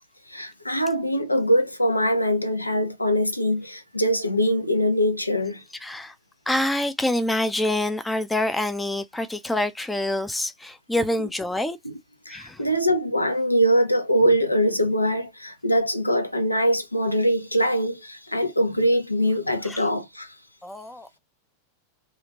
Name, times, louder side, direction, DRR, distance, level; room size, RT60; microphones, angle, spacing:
voice 1, 0.3-5.6 11.8-11.9 12.3-20.3, equal, 85° left, 0.5 m, -23 dB
voice 2, 5.8-6.1 6.5-11.8 12.3-12.6 19.7-19.8 20.6-21.2, left 1 dB, 5° left, 0.4 m, -26 dB
2.8 x 2.4 x 2.8 m
figure-of-eight pair, 90°, 0 cm